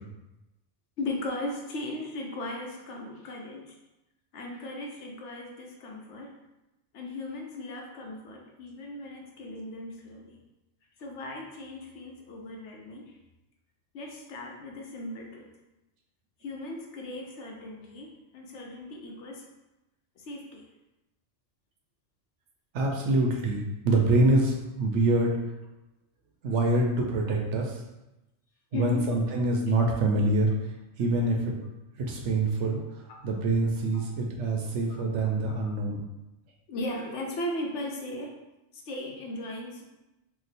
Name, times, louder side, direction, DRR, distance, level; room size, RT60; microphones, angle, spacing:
voice 1, 1.0-3.8 4.3-6.3 6.9-10.4 11.0-13.2 13.9-15.5 16.4-19.5 20.2-20.6 28.7-29.1 33.9-34.1 34.9-35.0 35.5-35.6 36.7-38.4 38.7-39.8, left 1 dB, 70° left, 1 dB, 0.9 m, -37 dB
voice 2, 22.7-25.3 26.4-27.8 28.7-30.5 31.0-31.5 32.0-32.8 33.2-36.0, right 2 dB, 70° right, 0 dB, 0.8 m, -25 dB
2.9 x 2.1 x 4.0 m, 0.97 s
omnidirectional pair, 1.3 m